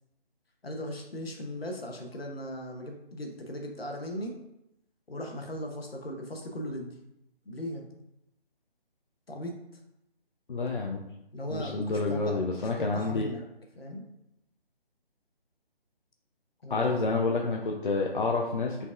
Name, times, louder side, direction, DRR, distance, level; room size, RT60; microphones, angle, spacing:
voice 1, 0.6-4.4 5.1-7.0 7.4-7.9 9.3-9.5 11.3-13.4 13.8-14.0 16.6-17.3, equal, 75° left, 2 dB, 1.0 m, -38 dB
voice 2, 10.5-11.1 11.5-13.2 16.7-18.8, left 3 dB, 55° left, 1 dB, 0.6 m, -29 dB
4.7 x 4.0 x 2.4 m, 0.85 s
figure-of-eight pair, 150°, 30 cm